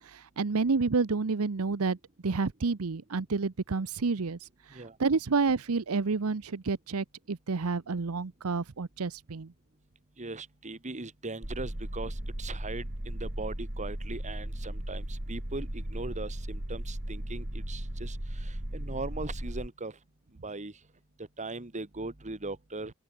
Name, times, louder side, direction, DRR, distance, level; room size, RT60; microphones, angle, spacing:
voice 1, 0.0-2.0 2.2-9.5, right 4 dB, 75° right, 0.8 m, -29 dB
voice 2, 10.2-18.2 18.7-19.9 20.4-20.7 21.4-22.9, right 2 dB, 35° right, 2.0 m, -39 dB
sound 1, 11.4-19.7, right 1 dB, 50° right, 3.0 m, -36 dB
open air
head